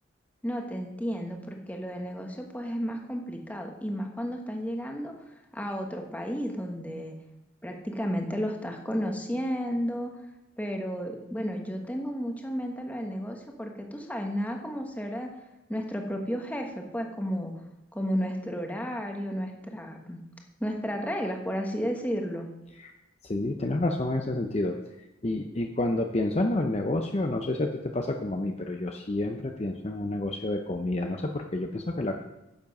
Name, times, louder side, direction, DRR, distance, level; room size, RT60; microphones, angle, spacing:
voice 1, 0.4-5.1 5.5-7.2 7.6-10.1 10.6-15.3 15.7-17.5 17.9-20.2 20.6-22.5, equal, 10° left, 2 dB, 1.2 m, -32 dB
voice 2, 23.2-24.8 25.2-32.2, left 2 dB, 35° left, 3 dB, 0.6 m, -29 dB
10.5 x 7.2 x 5.4 m, 0.94 s
head